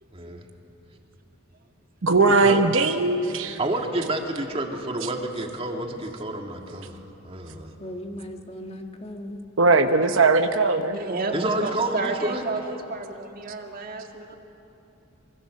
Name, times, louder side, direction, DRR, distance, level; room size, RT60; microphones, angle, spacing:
voice 1, 0.1-0.5 2.3-2.6 3.6-7.0 7.2-7.7 11.3-12.4, right 1 dB, 30° right, 2 dB, 2.0 m, -29 dB
voice 2, 2.0-3.6 9.6-11.0, right 3 dB, 70° right, 7 dB, 1.0 m, -19 dB
voice 3, 7.8-9.4, equal, 30° left, 3 dB, 1.7 m, -37 dB
voice 4, 10.9-14.4, right 3 dB, 45° right, 3 dB, 2.0 m, -31 dB
24.0 x 24.0 x 6.6 m, 2.8 s
head